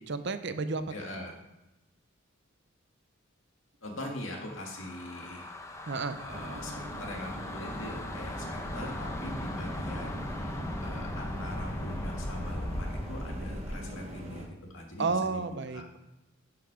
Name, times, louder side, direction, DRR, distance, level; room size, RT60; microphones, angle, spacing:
voice 1, 0.1-0.9 5.9-6.2 15.0-16.0, right 4 dB, 60° right, 11 dB, 0.6 m, -31 dB
voice 2, 0.9-1.4 3.8-5.6 6.2-15.8, left 1 dB, 75° left, 1 dB, 2.0 m, -42 dB
sound 1, 4.2-13.9, left 1 dB, 15° left, 0.7 m, -38 dB
sound 2, 6.3-14.5, equal, 30° right, 1.2 m, -42 dB
11.5 x 5.8 x 5.0 m, 0.99 s
head